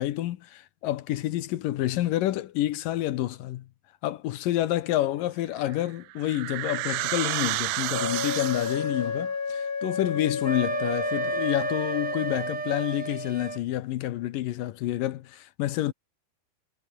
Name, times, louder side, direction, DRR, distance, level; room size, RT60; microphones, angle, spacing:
voice 1, 0.0-3.7 4.0-15.9, left 14 dB, 70° left, 2.4 m, -28 dB
sound 1, 5.6-9.0, right 19 dB, 85° right, 2.5 m, -31 dB
Wind instrument woodwind instrument, 7.9-12.5, left 5 dB, 55° left, 5.5 m, -31 dB
Wind instrument woodwind instrument 2, 10.4-13.6, right 4 dB, 30° right, 1.7 m, -32 dB
omnidirectional pair, 4.4 m